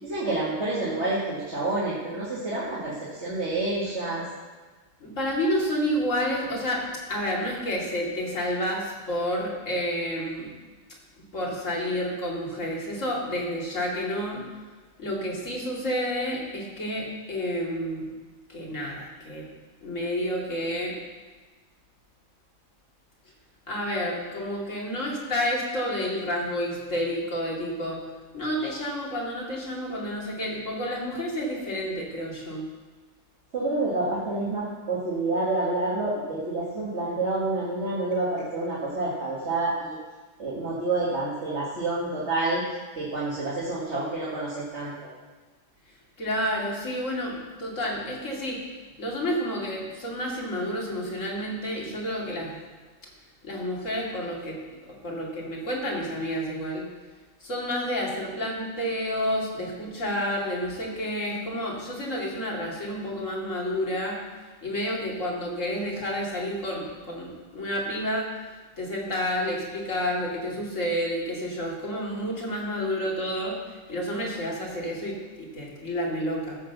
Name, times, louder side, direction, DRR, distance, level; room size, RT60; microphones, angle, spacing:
voice 1, 0.0-4.3 33.5-40.0 40.4-42.6 43.0-45.1, right 2 dB, 55° right, -7 dB, 2.2 m, -28 dB
voice 2, 5.0-10.5 11.3-14.4 15.0-18.1 18.5-19.5 19.8-21.0 23.7-28.0 28.3-32.6 46.2-48.6 49.0-52.6 53.4-54.6 55.0-56.9 57.4-64.2 64.6-68.3 68.8-76.6, equal, 70° left, -2 dB, 2.9 m, -30 dB
14.5 x 6.6 x 6.8 m, 1.3 s
omnidirectional pair, 1.4 m